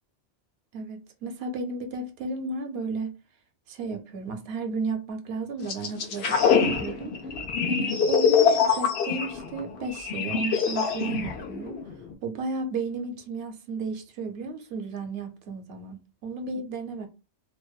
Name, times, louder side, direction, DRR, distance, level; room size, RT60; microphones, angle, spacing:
voice 1, 0.7-3.2 3.7-7.2 7.7-11.8 12.2-17.1, right 3 dB, 75° right, 0.8 m, -33 dB
sound 1, 5.7-12.1, left 6 dB, 80° left, 0.9 m, -24 dB
2.6 x 2.1 x 2.2 m
omnidirectional pair, 1.1 m